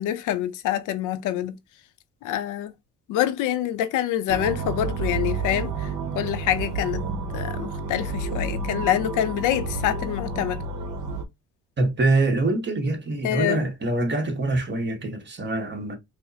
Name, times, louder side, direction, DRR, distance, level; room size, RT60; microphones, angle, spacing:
voice 1, 0.0-1.6 2.2-2.7 3.1-5.9 6.1-7.0 7.3-10.6 13.2-13.6, left 12 dB, 85° left, 0.6 m, -26 dB
sound 1, 4.3-11.2, right 3 dB, 75° right, 0.8 m, -30 dB
voice 2, 11.8-16.0, right 2 dB, 35° right, 1.2 m, -24 dB
4.8 x 2.1 x 2.7 m
cardioid pair, 100°, 30 cm